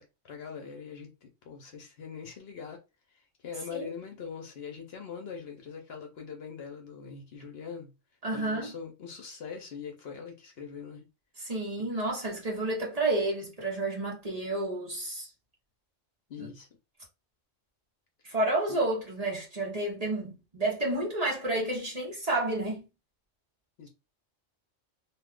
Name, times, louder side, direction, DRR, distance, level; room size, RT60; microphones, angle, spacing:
voice 1, 0.0-2.8 3.1-7.9 8.3-11.0 16.3-16.7 18.7-18.8 23.8-23.9, left 6 dB, 60° left, 0.8 m, -42 dB
voice 2, 8.2-8.7 11.4-15.3 16.4-16.5 18.2-22.9, right 2 dB, 35° right, 0.9 m, -30 dB
2.5 x 2.4 x 3.5 m
omnidirectional pair, 1.3 m